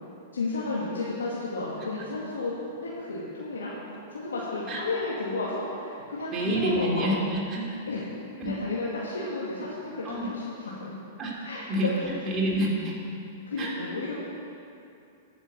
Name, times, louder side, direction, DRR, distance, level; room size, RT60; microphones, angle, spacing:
voice 1, 0.3-3.8 4.1-7.1 7.9-10.9 11.4-12.0 13.4-14.2, left 2 dB, 75° left, -6 dB, 2.0 m, -32 dB
voice 2, 6.3-7.6 8.4-8.5 10.0-10.3 11.2-11.3 11.7-12.9 13.6-13.7, right 1 dB, 25° right, -4 dB, 3.5 m, -28 dB
14.5 x 6.7 x 7.2 m, 2.7 s
figure-of-eight pair, 100°, 0 cm